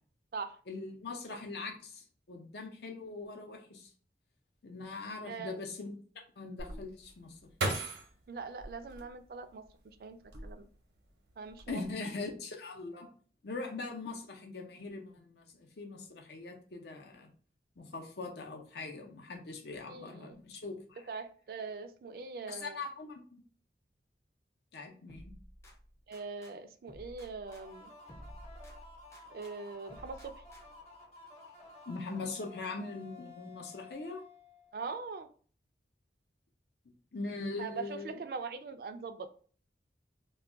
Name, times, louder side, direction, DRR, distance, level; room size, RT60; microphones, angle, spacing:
voice 1, 0.7-3.9 4.6-5.9 6.4-7.4 11.7-13.1 13.4-17.3 17.8-21.0 22.5-23.4 24.7-25.3 31.9-34.2 37.1-38.2, left 3 dB, 65° left, 2 dB, 0.6 m, -41 dB
voice 2, 5.3-5.6 8.3-9.6 10.0-10.7 11.4-11.8 19.9-20.4 21.1-22.8 26.1-27.9 29.3-30.3 34.7-35.3 37.6-39.3, right 4 dB, 55° right, 9 dB, 0.3 m, -42 dB
sound 1, 6.6-9.7 10.2-10.9 11.3-11.7, right 2 dB, 85° right, 0.7 m, -38 dB
sound 2, 25.1-26.5 26.9-29.5 29.9-30.9, equal, 15° left, 0.4 m, -53 dB
sound 3, 27.4-35.0, left 3 dB, 35° left, 0.9 m, -54 dB
2.3 x 2.2 x 3.6 m, 0.43 s
head